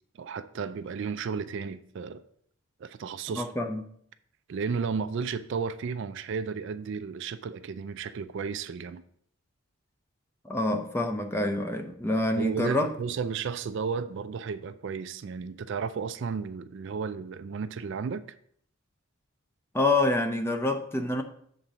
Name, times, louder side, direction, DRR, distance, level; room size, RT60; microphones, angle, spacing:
voice 1, 0.1-2.2 2.8-3.5 4.5-9.0 12.4-18.2, right 5 dB, 55° right, 0.3 m, -33 dB
voice 2, 3.4-3.8 10.4-12.9 19.7-21.2, left 2 dB, 10° left, 0.5 m, -27 dB
7.2 x 3.9 x 6.0 m
head